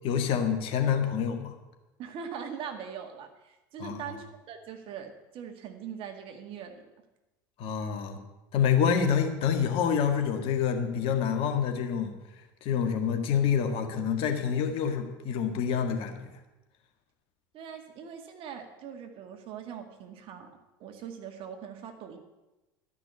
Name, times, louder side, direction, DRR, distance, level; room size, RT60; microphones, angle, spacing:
voice 1, 0.0-1.5 3.8-4.1 7.6-8.2 8.5-12.2 12.6-16.3, left 7 dB, 55° left, 5 dB, 1.8 m, -27 dB
voice 2, 2.0-6.7 17.5-20.5 20.8-22.2, right 7 dB, 50° right, 5 dB, 2.0 m, -41 dB
12.5 x 6.0 x 8.4 m, 1.0 s
hypercardioid pair, 85°, 12 cm